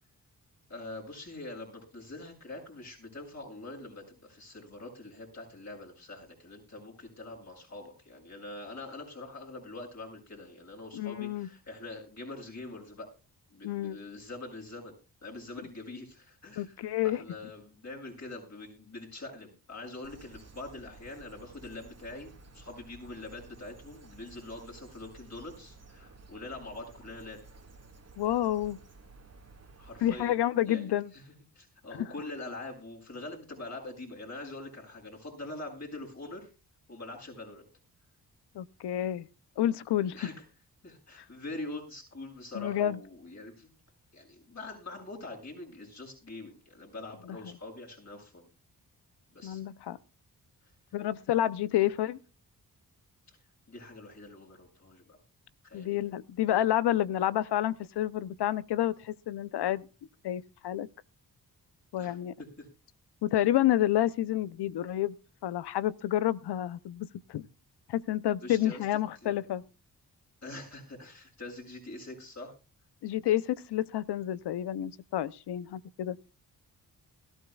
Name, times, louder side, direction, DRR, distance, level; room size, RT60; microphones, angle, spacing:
voice 1, 0.7-13.1 13.5-15.0 15.2-27.4 29.8-30.3 30.6-36.5 36.9-37.6 40.1-40.4 40.8-43.7 44.1-48.5 49.3-49.6 53.3-53.4 53.7-55.2 55.6-56.0 62.0-62.7 68.4-68.9 69.2-69.4 70.4-72.5, left 2 dB, 45° left, 7.6 m, -44 dB
voice 2, 10.9-11.5 13.6-14.0 16.6-17.2 28.2-28.8 30.0-31.1 32.0-32.1 38.6-39.3 39.6-40.2 42.5-43.0 49.4-50.0 50.9-52.2 55.7-59.8 60.2-60.9 61.9-62.3 63.2-65.1 65.4-67.5 67.9-69.6 73.0-76.2, left 12 dB, 85° left, 0.7 m, -29 dB
sound 1, 20.0-30.2, right 3 dB, 40° right, 2.0 m, -54 dB
21.0 x 14.0 x 2.3 m
cardioid pair, 55°, 39 cm